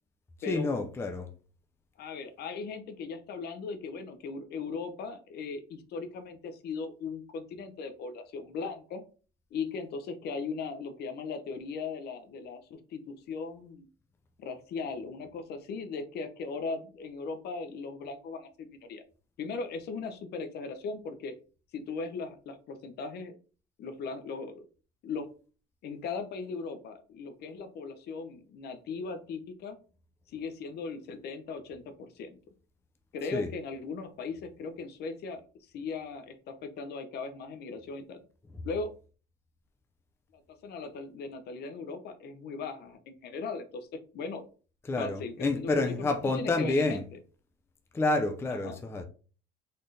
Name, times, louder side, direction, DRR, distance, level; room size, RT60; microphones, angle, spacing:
voice 1, 0.5-1.3 33.3-33.5 44.9-47.0 47.9-49.0, left 2 dB, 10° left, 0.5 m, -29 dB
voice 2, 2.0-9.0 9.5-13.9 14.4-19.0 19.4-21.3 21.7-23.3 23.8-24.7 25.0-25.3 25.8-29.8 30.3-32.4 33.1-38.2 38.6-38.9 40.6-44.4 45.0-47.0 48.5-48.8, left 4 dB, 55° left, 0.8 m, -38 dB
4.2 x 3.9 x 3.3 m
cardioid pair, 150°, 20 cm